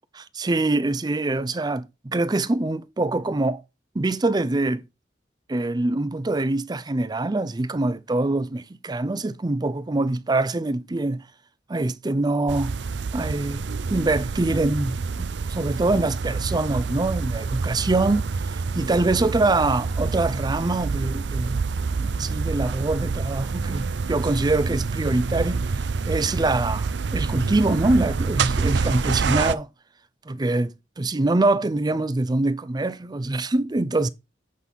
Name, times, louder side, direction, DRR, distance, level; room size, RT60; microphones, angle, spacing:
voice 1, 0.1-3.6 3.9-4.8 5.5-11.2 11.7-12.7 13.1-21.6 22.0-25.6 26.1-29.7 30.3-34.1, right 2 dB, 25° right, 0.5 m, -24 dB
sound 1, 12.5-29.5, right 4 dB, 80° right, 0.5 m, -27 dB
8.2 x 5.4 x 4.2 m
head